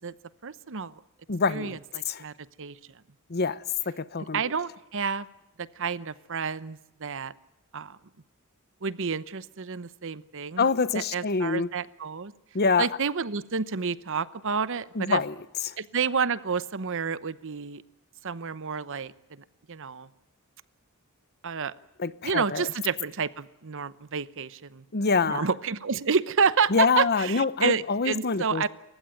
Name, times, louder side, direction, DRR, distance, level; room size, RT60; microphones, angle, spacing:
voice 1, 0.4-1.0 1.5-2.8 4.3-5.3 5.6-7.3 7.7-8.0 8.8-10.7 10.9-12.3 12.8-15.2 15.8-17.8 18.2-19.1 19.7-20.1 21.4-21.7 22.2-28.7, right 5 dB, 60° right, 0.9 m, -29 dB
voice 2, 1.3-1.8 2.1-2.2 3.3-4.4 10.6-11.7 12.5-12.9 15.0-15.3 15.6-15.7 22.0-22.7 24.9-25.5 26.7-28.6, left 4 dB, 50° left, 0.9 m, -25 dB
29.0 x 15.5 x 9.2 m
head